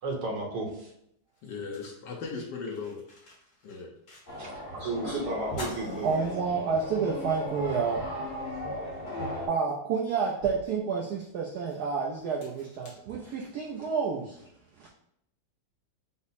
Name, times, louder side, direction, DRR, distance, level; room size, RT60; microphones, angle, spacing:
voice 1, 0.0-0.9 4.4-4.5 4.8-6.3, right 2 dB, 60° right, -1 dB, 1.4 m, -33 dB
sound 1, 0.7-0.8 1.3-4.7 5.0-5.1 5.5-6.9 7.4-7.5 8.9-9.0 9.6-13.8, left 1 dB, 50° left, 1.6 m, -49 dB
voice 2, 1.4-3.0 3.6-3.9, left 4 dB, 65° left, 0 dB, 1.2 m, -37 dB
sound 2, 4.3-9.5, left 1 dB, 30° left, 0.9 m, -37 dB
voice 3, 4.7-5.2 6.0-8.1 9.5-14.4 14.8-14.9, right 5 dB, 80° right, -1 dB, 0.9 m, -30 dB
5.4 x 2.0 x 4.0 m, 0.74 s
omnidirectional pair, 2.3 m